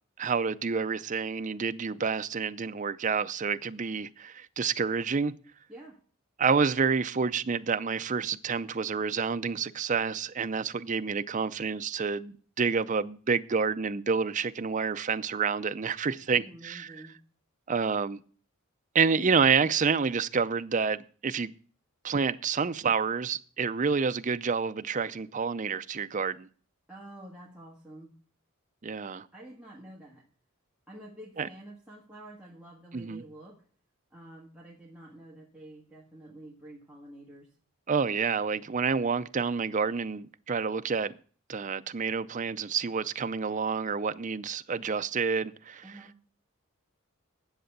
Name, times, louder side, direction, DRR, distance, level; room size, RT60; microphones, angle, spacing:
voice 1, 0.2-5.3 6.4-17.0 17.7-18.2 18.9-21.5 22.0-26.5 28.8-29.3 31.4-31.5 32.9-33.2 37.9-41.1 41.5-45.8, right 5 dB, 35° right, 0.5 m, -28 dB
voice 2, 5.7-6.0 16.1-17.2 19.1-19.3 26.9-28.1 29.3-30.3 30.9-33.6 34.1-37.5 45.8-46.2, right 1 dB, 5° right, 1.6 m, -48 dB
10.0 x 7.8 x 6.7 m
head